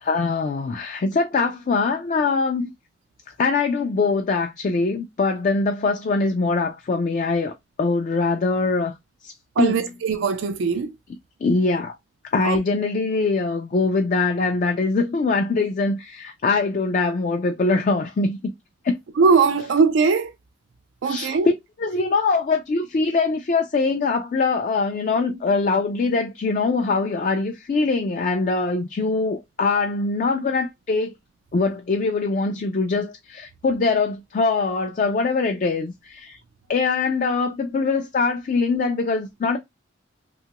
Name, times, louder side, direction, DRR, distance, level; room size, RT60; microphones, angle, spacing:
voice 1, 0.0-2.7 3.4-7.5 7.8-8.9 9.2-9.3 9.6-9.8 11.4-11.9 12.2-18.5 18.8-19.0 21.0-21.5 21.8-31.1 31.5-36.4 36.7-39.6, left 3 dB, 45° left, 0.3 m, -22 dB
voice 2, 9.6-10.9 12.4-12.6 19.2-20.3 21.0-21.5, right 5 dB, 85° right, 0.4 m, -20 dB
2.9 x 2.3 x 2.8 m
head